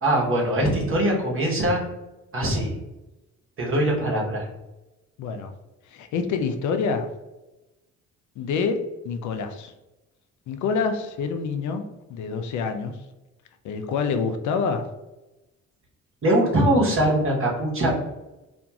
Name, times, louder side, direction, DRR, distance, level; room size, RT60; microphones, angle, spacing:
voice 1, 0.0-1.8 2.3-2.8 3.6-4.5 16.2-17.9, right 1 dB, 45° right, -2 dB, 1.0 m, -22 dB
voice 2, 5.2-5.5 5.9-7.1 8.4-8.8 9.0-9.7 10.5-11.8 12.1-12.9 13.6-14.8, left 5 dB, 75° left, 7 dB, 0.4 m, -26 dB
2.9 x 2.5 x 2.3 m, 1.0 s
cardioid pair, 90°, 30 cm